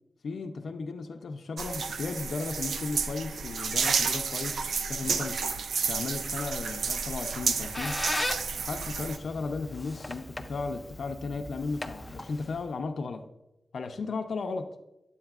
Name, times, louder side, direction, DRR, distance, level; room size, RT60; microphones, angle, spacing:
voice 1, 0.2-5.4 5.9-8.0 8.6-13.2 13.7-14.7, left 4 dB, 70° left, 0.5 m, -35 dB
sound 1, 1.6-9.2, right 5 dB, 85° right, 0.4 m, -31 dB
Squeak, 7.2-12.7, left 1 dB, 10° left, 0.4 m, -38 dB
8.8 x 8.3 x 2.4 m
wide cardioid pair, 140°, 0 cm